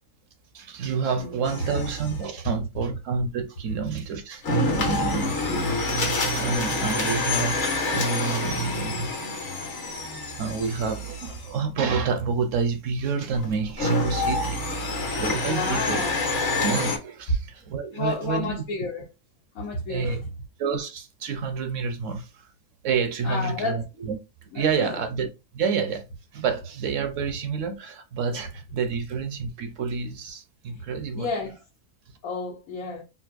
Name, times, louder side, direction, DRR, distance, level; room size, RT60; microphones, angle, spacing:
voice 1, 0.5-4.4 4.7-5.4 5.8-9.1 9.8-14.8 15.2-16.0 16.6-18.6 19.9-20.2 20.6-22.5 22.8-24.2 24.5-25.3 25.5-26.1 26.3-31.3, right 5 dB, 65° right, 0.9 m, -29 dB
voice 2, 1.2-1.7 5.5-5.7 9.6-10.4 15.5-16.2 17.9-19.1 19.5-20.3 23.2-23.8 24.5-25.0 31.1-31.6 32.2-33.0, left 3 dB, 75° left, 1.2 m, -32 dB
sound 1, 1.4-2.3 4.4-11.5 13.3-17.0, left 2 dB, 55° left, 1.3 m, -27 dB
4.0 x 2.5 x 2.4 m
omnidirectional pair, 1.5 m